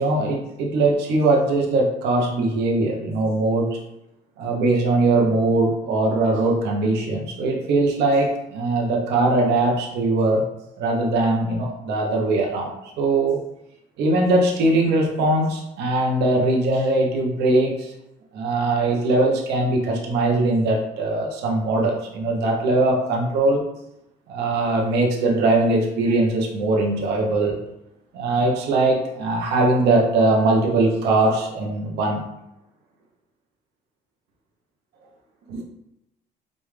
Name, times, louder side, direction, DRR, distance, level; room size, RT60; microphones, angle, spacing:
voice 1, 0.0-3.7 4.4-10.4 10.8-12.7 13.0-13.4 14.0-17.9 18.3-23.7 24.3-27.6 28.1-32.2 35.5-35.6, right 2 dB, 80° right, -1 dB, 1.0 m, -21 dB
5.3 x 2.6 x 3.3 m, 0.86 s
cardioid pair, 110°, 17 cm